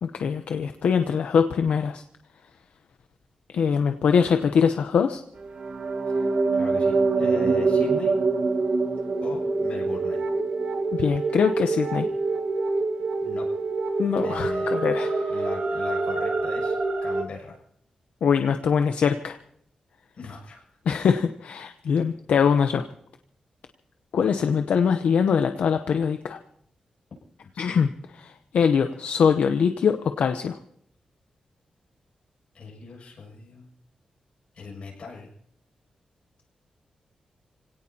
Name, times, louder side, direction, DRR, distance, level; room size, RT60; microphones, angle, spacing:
voice 1, 0.0-2.0 3.5-5.2 10.9-12.1 14.0-15.4 18.2-19.4 20.9-22.8 24.1-26.4 27.6-27.9 28.2-30.6, left 6 dB, 85° left, 7 dB, 0.7 m, -23 dB
sound 1, 5.4-17.2, right 3 dB, 60° right, 1.6 m, -25 dB
voice 2, 6.1-8.2 9.2-10.2 13.2-13.5 14.2-14.7 15.3-17.6 20.1-20.8 27.4-27.8 32.5-33.7 34.5-35.3, left 4 dB, 60° left, -2 dB, 6.8 m, -39 dB
29.0 x 17.5 x 2.9 m, 0.67 s
wide cardioid pair, 125°, 2 cm